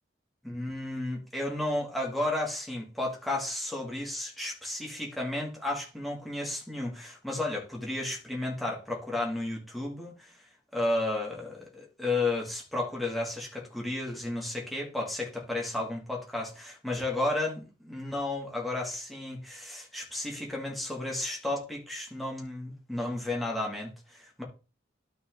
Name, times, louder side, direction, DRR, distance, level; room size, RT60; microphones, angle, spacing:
voice 1, 0.4-10.3 10.7-24.4, left 2 dB, ahead, 2.4 m, -33 dB
12.5 x 4.3 x 3.9 m
head